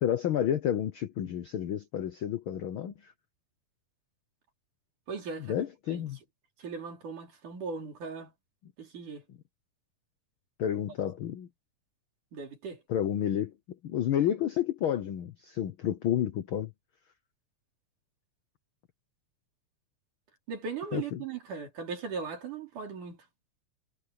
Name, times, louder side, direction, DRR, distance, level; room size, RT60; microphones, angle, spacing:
voice 1, 0.0-3.1 5.4-6.2 10.6-11.5 12.9-13.5 13.8-16.7 20.9-21.2, left 10 dB, 80° left, 1.1 m, -30 dB
voice 2, 5.1-5.5 5.9-6.0 6.6-8.3 8.8-9.2 12.3-12.8 20.5-23.2, right 5 dB, 80° right, 5.2 m, -38 dB
omnidirectional pair, 3.6 m